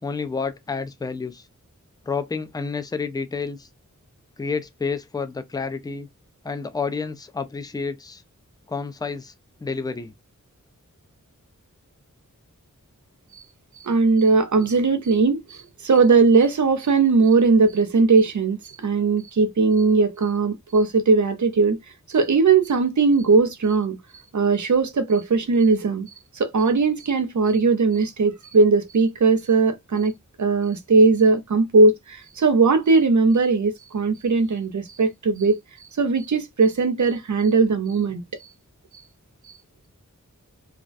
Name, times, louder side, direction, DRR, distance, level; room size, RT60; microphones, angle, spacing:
voice 1, 0.0-1.4 2.1-3.7 4.4-6.1 6.4-8.2 8.7-9.3 9.6-10.1, left 5 dB, 15° left, 0.3 m, -29 dB
voice 2, 13.8-21.8 22.1-24.0 24.3-26.1 26.4-30.1 30.4-35.6 36.0-38.2, right 4 dB, 65° right, 0.6 m, -19 dB
2.3 x 2.1 x 2.5 m
wide cardioid pair, 45°, 32 cm